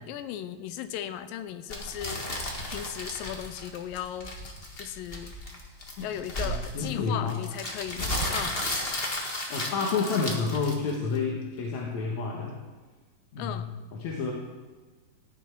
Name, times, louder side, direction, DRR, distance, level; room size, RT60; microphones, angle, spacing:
voice 1, 0.0-4.3 4.8-5.4 6.0-8.7 13.4-13.7, left 10 dB, 90° left, 11 dB, 2.5 m, -37 dB
sound 1, 1.7-11.2, left 1 dB, 35° left, 0.9 m, -34 dB
voice 2, 6.4-7.4 9.5-12.5 13.3-13.6 13.9-14.3, left 4 dB, 60° left, -2 dB, 2.4 m, -29 dB
16.0 x 10.0 x 4.6 m, 1.4 s
omnidirectional pair, 3.9 m